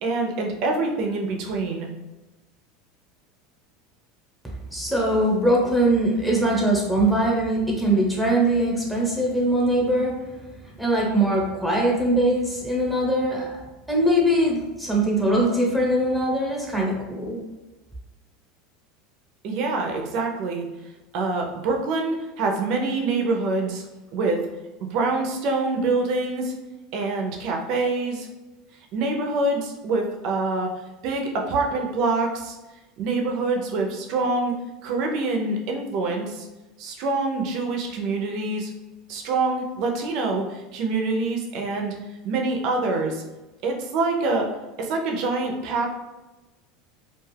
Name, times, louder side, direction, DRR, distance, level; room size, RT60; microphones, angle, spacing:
voice 1, 0.0-1.9 19.4-20.7 21.1-23.8 24.1-24.4 24.8-26.5 26.9-28.3 28.9-30.7 31.0-32.6 33.0-34.5 34.8-36.5 36.8-38.7 39.1-41.9 42.2-43.2 43.6-44.5 44.8-45.9, right 3 dB, 60° right, 2 dB, 0.6 m, -25 dB
voice 2, 4.7-10.4 10.8-17.4, right 1 dB, ahead, -3 dB, 0.9 m, -22 dB
2.4 x 2.3 x 3.3 m, 1.1 s
supercardioid pair, 105°, 0 cm